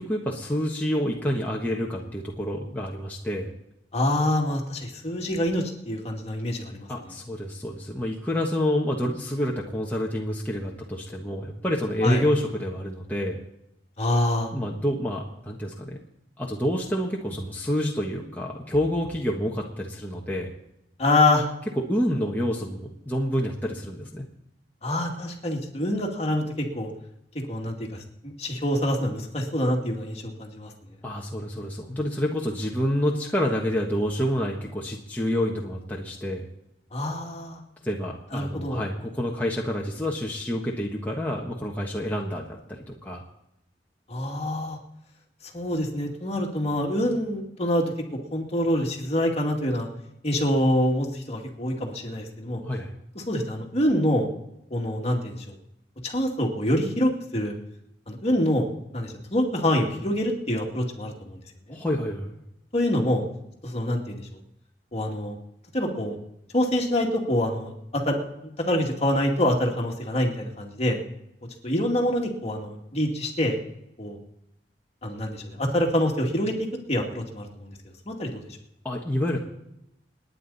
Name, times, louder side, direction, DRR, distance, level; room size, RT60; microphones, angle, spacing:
voice 1, 0.0-3.5 6.9-13.4 14.5-16.0 16.4-20.5 21.9-24.2 31.0-36.5 37.8-43.2 52.6-52.9 61.7-62.3 78.8-79.4, equal, 10° left, -3 dB, 1.5 m, -28 dB
voice 2, 3.9-6.9 12.0-12.2 14.0-14.5 21.0-21.5 24.8-26.9 27.5-30.7 36.9-37.6 38.3-38.8 44.1-44.8 45.5-47.9 48.3-49.9 50.2-52.6 53.2-54.3 54.7-55.6 56.0-57.5 58.1-61.4 61.7-61.8 62.7-63.2 63.6-64.3 64.9-65.4 65.7-66.2 66.5-68.2 68.7-71.0 71.6-73.6 74.0-74.2 75.0-77.7 78.0-78.4, left 1 dB, 35° left, 0 dB, 2.4 m, -26 dB
29.0 x 9.8 x 4.2 m, 0.85 s
head